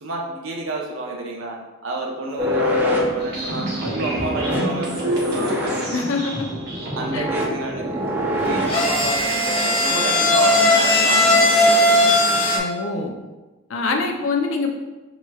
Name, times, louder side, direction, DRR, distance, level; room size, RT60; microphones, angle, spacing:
voice 1, 0.0-1.6 1.8-5.8 6.9-8.0 8.4-12.1 14.0-14.2, right 2 dB, 85° right, -1 dB, 0.9 m, -29 dB
sound 1, 2.4-9.1, equal, 10° right, 0.5 m, -25 dB
sound 2, 3.2-7.2, right 1 dB, 50° right, 1.3 m, -29 dB
voice 2, 5.9-6.5 7.1-7.3 12.5-13.1 13.7-14.7, left 3 dB, 80° left, 3 dB, 0.6 m, -24 dB
sound 3, 8.3-12.6, left 1 dB, 30° left, 0.7 m, -17 dB
6.9 x 3.0 x 2.4 m, 1.2 s
head